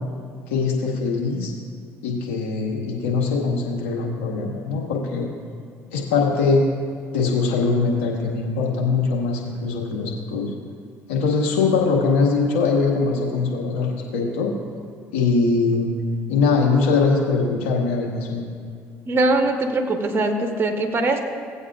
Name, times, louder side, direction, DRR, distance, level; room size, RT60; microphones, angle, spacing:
voice 1, 0.5-1.5 2.0-5.3 5.9-6.6 7.1-10.5 11.1-14.5 15.1-15.9 16.3-18.4, left 4 dB, 85° left, -2 dB, 1.8 m, -22 dB
voice 2, 19.1-21.2, right 2 dB, 35° right, 3 dB, 1.5 m, -21 dB
17.5 x 8.2 x 2.5 m, 2.4 s
hypercardioid pair, 65°, 7 cm